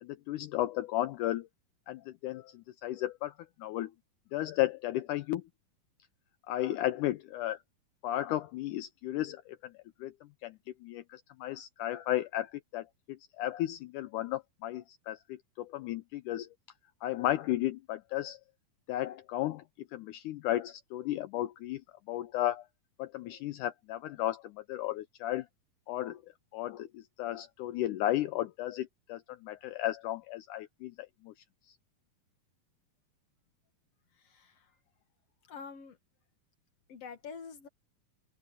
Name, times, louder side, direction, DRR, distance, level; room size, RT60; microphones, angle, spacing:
voice 1, 0.0-1.5 1.9-3.3 3.6-3.9 4.3-5.4 6.5-7.6 8.0-9.7 10.0-10.1 10.4-16.5 17.0-18.4 18.9-19.6 19.9-21.8 22.1-22.6 23.0-25.5 25.9-26.2 26.5-31.3, left 14 dB, 80° left, 1.9 m, -34 dB
voice 2, 34.2-34.7 35.5-36.0 36.9-37.7, left 6 dB, 55° left, 2.1 m, -46 dB
open air
omnidirectional pair, 4.2 m